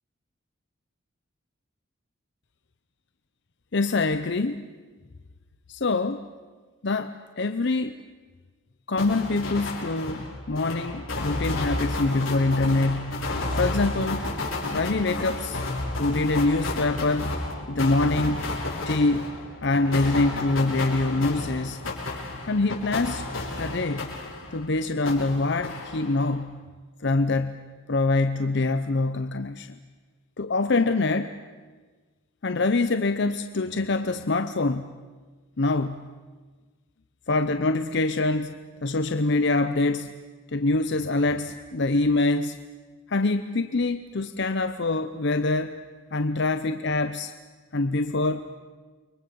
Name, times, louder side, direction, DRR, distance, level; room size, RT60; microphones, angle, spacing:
voice 1, 3.7-4.7 5.7-6.3 6.8-8.0 8.9-13.2 13.6-14.2 14.7-15.6 16.0-17.3 17.7-18.4 18.9-19.3 19.6-21.8 22.5-23.2 23.6-24.1 24.5-26.6 27.0-29.8 30.4-31.4 32.4-34.9 35.6-36.1 37.3-38.6 38.8-40.1 40.5-42.6 43.1-45.7 46.1-47.3 47.7-48.5, left 2 dB, 55° left, 10 dB, 0.8 m, -25 dB
sound 1, 9.0-24.7 25.1-26.4, left 2 dB, 75° left, 6.3 m, -32 dB
29.5 x 24.0 x 7.0 m, 1.4 s
head